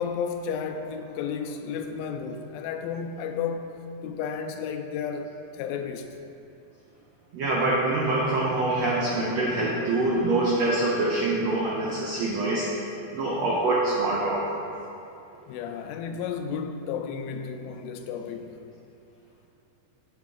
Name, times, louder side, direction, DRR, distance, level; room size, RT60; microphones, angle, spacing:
voice 1, 0.0-3.7 4.0-6.1 15.5-18.6, left 6 dB, 85° left, 5 dB, 2.3 m, -32 dB
voice 2, 7.3-12.8 13.1-14.5, right 2 dB, 85° right, -4 dB, 1.4 m, -25 dB
8.6 x 6.5 x 3.6 m, 2.7 s
omnidirectional pair, 4.1 m